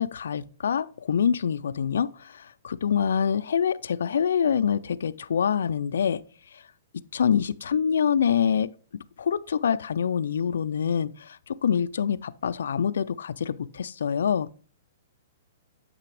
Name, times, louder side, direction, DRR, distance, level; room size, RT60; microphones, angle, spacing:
voice 1, 0.0-6.2 7.1-8.7 9.2-14.6, left 7 dB, 85° left, 0.3 m, -25 dB
7.8 x 5.8 x 3.3 m
hypercardioid pair, 165°, 0 cm